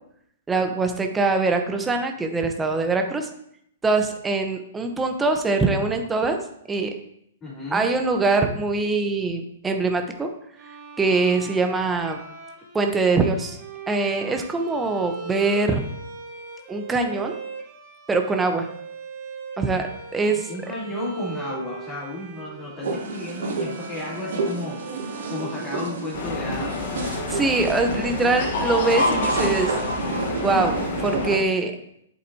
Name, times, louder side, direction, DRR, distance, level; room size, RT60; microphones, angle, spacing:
voice 1, 0.5-3.3 3.8-6.4 6.7-6.9 7.7-10.3 11.0-12.2 12.7-13.6 13.9-15.9 16.7-17.3 18.1-18.7 19.6-19.9 20.1-20.5 27.3-29.7 30.4-30.8 31.0-31.7, right 3 dB, 10° right, 4 dB, 0.9 m, -23 dB
voice 2, 7.4-7.9 20.5-26.9, left 1 dB, 20° left, -8 dB, 3.3 m, -33 dB
Bowed string instrument, 10.6-26.4, right 5 dB, 40° right, 1.6 m, -40 dB
sound 1, 22.8-31.4, right 3 dB, 80° right, 2.6 m, -30 dB
sound 2, 26.1-31.4, left 3 dB, 55° left, 1.3 m, -28 dB
8.3 x 7.7 x 2.8 m, 0.73 s
hypercardioid pair, 130°, 0 cm